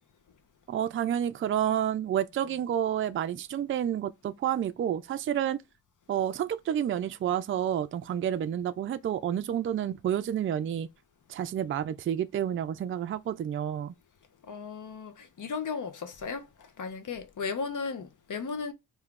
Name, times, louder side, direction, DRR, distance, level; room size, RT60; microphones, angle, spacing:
voice 1, 0.7-5.6 6.1-10.9 11.3-13.9, right 10 dB, 35° right, 0.4 m, -29 dB
voice 2, 14.5-16.5 16.8-18.7, left 5 dB, 55° left, 0.9 m, -35 dB
2.8 x 2.3 x 3.5 m
supercardioid pair, 45°, 38 cm